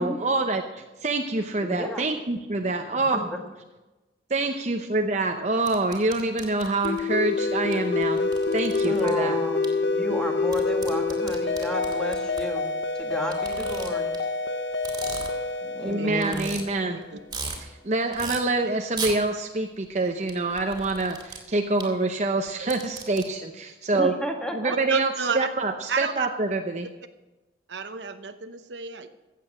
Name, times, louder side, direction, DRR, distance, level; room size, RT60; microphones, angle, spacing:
voice 1, 0.0-3.2 4.3-9.4 15.8-17.0 17.6-24.1 24.5-26.9, right 2 dB, 40° right, 4 dB, 0.7 m, -26 dB
voice 2, 1.6-2.1 2.9-3.4 4.4-4.5 8.8-9.6 9.8-12.6 13.0-14.1 15.6-16.5 23.9-24.7, left 1 dB, 5° left, 2 dB, 1.5 m, -32 dB
sound 1, 5.6-7.0 7.7-7.8 8.0-9.1 9.6-9.7 10.5-12.4 13.3-14.2 14.7-15.5 15.9-16.0 16.2-16.6 17.0-17.6 18.1-18.4 18.9-19.2 20.3-21.4 21.8-21.9 22.5-23.2, right 4 dB, 25° right, 2.3 m, -36 dB
sound 2, 6.8-17.2, left 3 dB, 80° left, 0.8 m, -27 dB
voice 3, 24.9-25.4 25.9-26.3 27.7-29.1, right 5 dB, 80° right, 9 dB, 0.9 m, -31 dB
14.5 x 8.5 x 6.2 m, 1.1 s
head